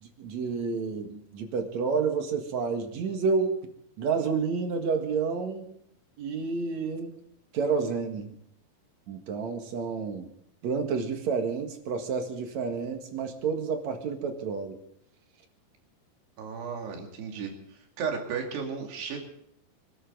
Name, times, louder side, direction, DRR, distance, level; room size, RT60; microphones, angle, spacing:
voice 1, 0.0-3.6 4.0-5.7 6.2-7.2 7.5-8.3 9.1-10.3 10.6-14.8, right 5 dB, 55° right, 5 dB, 2.6 m, -30 dB
voice 2, 16.4-17.5 18.0-19.2, right 6 dB, 80° right, 2 dB, 4.6 m, -34 dB
27.0 x 12.5 x 3.9 m, 0.71 s
omnidirectional pair, 4.7 m